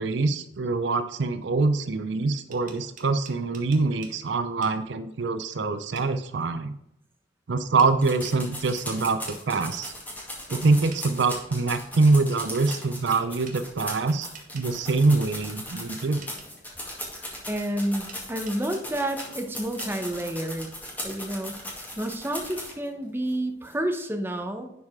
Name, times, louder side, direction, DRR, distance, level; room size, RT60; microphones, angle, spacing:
voice 1, 0.0-6.7 7.5-9.9 10.5-14.3 14.5-16.2, right 3 dB, 70° right, 10 dB, 0.5 m, -24 dB
sound 1, 2.3-4.2 4.6-4.8 5.9-6.1 7.8-7.9 9.3-9.4 10.9-11.1 13.4-13.6 14.3-14.7 16.2-16.5 18.1-18.6 19.2-19.3 19.8-19.9, right 5 dB, 45° right, 1.4 m, -46 dB
sound 2, 8.0-22.9 23.3-23.4 23.6-23.7, left 1 dB, 10° left, 2.1 m, -38 dB
voice 2, 17.5-20.7 21.0-21.6 22.0-24.7, right 1 dB, 10° right, 4 dB, 0.8 m, -30 dB
10.5 x 4.8 x 3.6 m, 0.83 s
head